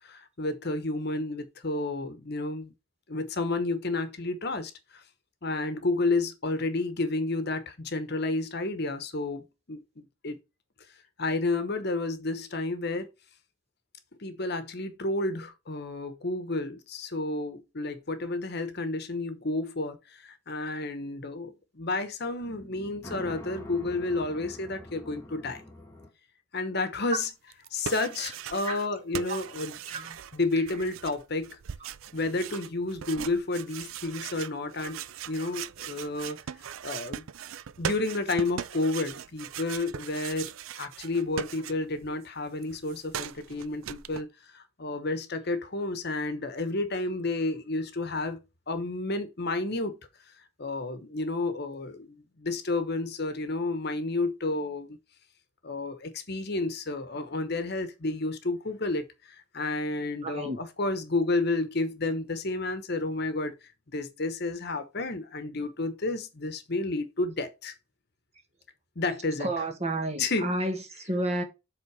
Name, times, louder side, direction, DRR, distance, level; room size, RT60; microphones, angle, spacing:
voice 1, 0.0-2.7 3.1-5.0 5.4-10.4 11.2-13.1 14.2-25.6 26.5-27.3 27.7-31.6 32.1-35.0 35.3-36.4 36.8-37.3 37.8-40.5 40.8-48.4 48.7-50.0 50.6-55.0 55.6-63.5 63.9-67.7 69.0-69.5 70.2-70.5, left 2 dB, 50° left, 1.0 m, -31 dB
sound 1, 22.4-26.1, left 1 dB, 10° left, 1.4 m, -45 dB
sound 2, 27.5-28.9 29.1-42.1 42.4-44.2, right 8 dB, 85° right, 0.5 m, -39 dB
voice 2, 60.2-60.6 69.4-71.4, right 1 dB, 30° right, 1.5 m, -31 dB
7.6 x 3.8 x 4.8 m
head